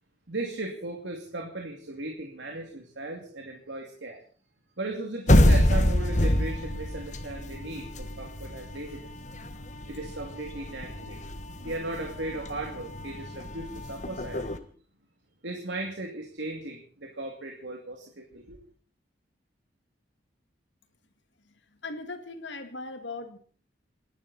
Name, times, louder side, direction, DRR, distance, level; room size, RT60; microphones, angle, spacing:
voice 1, 0.3-4.2 4.8-9.1 9.9-11.2 11.6-14.5 15.4-18.6, right 2 dB, 85° right, 2 dB, 2.5 m, -37 dB
sound 1, 5.3-14.6, left 1 dB, 40° left, 1.4 m, -26 dB
voice 2, 21.8-23.4, left 3 dB, 85° left, 8 dB, 2.1 m, -38 dB
29.0 x 11.0 x 4.2 m, 0.43 s
head